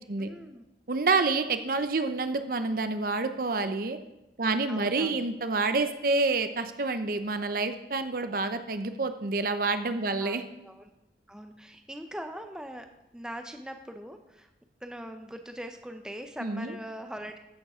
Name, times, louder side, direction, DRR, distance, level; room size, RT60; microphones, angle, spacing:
voice 1, 0.2-0.6 4.7-5.3 10.2-10.9 11.3-12.9 13.1-14.5 14.8-17.4, equal, 5° right, 6 dB, 0.6 m, -41 dB
voice 2, 0.9-4.0 4.4-10.4 16.4-16.7, right 3 dB, 50° right, 9 dB, 0.7 m, -28 dB
14.0 x 6.7 x 5.0 m, 0.93 s
head